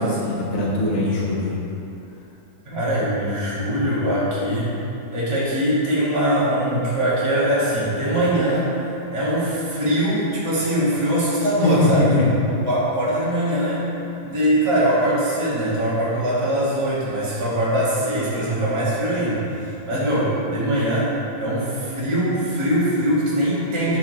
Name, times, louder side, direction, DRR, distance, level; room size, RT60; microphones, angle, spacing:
voice 1, 0.0-1.6 11.6-12.3, left 1 dB, 40° left, -6 dB, 1.3 m, -21 dB
voice 2, 2.6-4.8 5.1-8.7 9.1-12.3 12.6-13.9 14.2-21.1 21.4-24.0, equal, 15° right, -8 dB, 1.5 m, -22 dB
11.0 x 4.4 x 3.2 m, 2.8 s
omnidirectional pair, 2.0 m